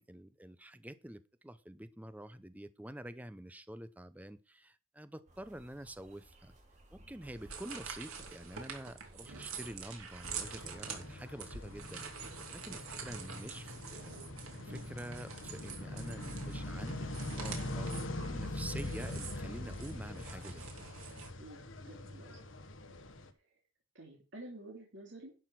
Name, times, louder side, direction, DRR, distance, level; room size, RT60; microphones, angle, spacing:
voice 1, 0.0-6.5 6.9-14.1 14.6-20.7, right 1 dB, 5° right, 0.6 m, -48 dB
sound 1, 5.3-11.1, right 1 dB, 35° right, 2.4 m, -60 dB
sound 2, 7.2-21.3, right 6 dB, 90° right, 2.6 m, -47 dB
sound 3, 10.3-23.3, left 1 dB, 65° left, 1.3 m, -43 dB
voice 2, 21.4-22.4 23.9-25.3, right 1 dB, 55° right, 2.8 m, -50 dB
11.0 x 6.1 x 5.9 m
head